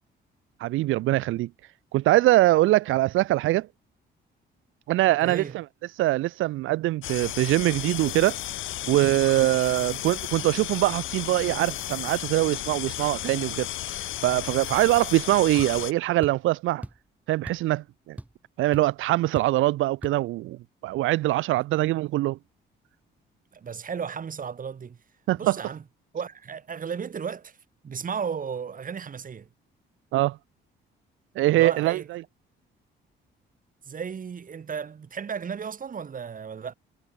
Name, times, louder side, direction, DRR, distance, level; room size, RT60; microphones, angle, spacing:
voice 1, 0.6-1.5 1.9-3.7 4.9-5.6 6.0-8.4 8.9-16.8 17.3-18.2 18.6-20.6 20.8-22.4 25.3-25.6 30.1-30.4 31.4-32.2, right 17 dB, 85° right, 0.7 m, -23 dB
voice 2, 5.2-5.5 23.5-25.0 25.4-25.8 26.1-27.6 27.8-29.5 31.5-32.1 33.8-36.7, right 6 dB, 45° right, 2.5 m, -34 dB
sound 1, 7.0-15.9, left 14 dB, 85° left, 2.2 m, -34 dB
sound 2, 16.2-16.5 16.8-17.1 17.5-17.7 18.0-18.5 18.7-18.9 19.4-19.6 20.0-20.2, right 1 dB, 5° right, 3.3 m, -39 dB
cardioid pair, 90°, 20 cm